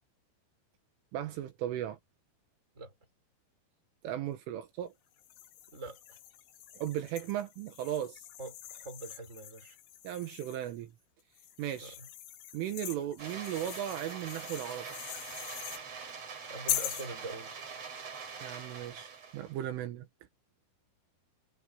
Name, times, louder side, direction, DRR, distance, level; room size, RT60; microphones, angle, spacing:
voice 1, 1.1-2.0 4.0-4.9 6.7-8.2 10.0-10.9 11.6-12.0 12.5-14.9 18.4-20.1, right 11 dB, 75° right, 3.8 m, -36 dB
sound 1, 5.2-10.8 11.4-15.8 16.7-17.1, left 12 dB, 85° left, 4.7 m, -42 dB
voice 2, 5.7-6.2 8.4-9.8 11.8-12.1 16.5-17.6, right 2 dB, 15° right, 5.6 m, -44 dB
sound 2, 13.2-19.7, right 5 dB, 35° right, 4.2 m, -44 dB
omnidirectional pair, 5.9 m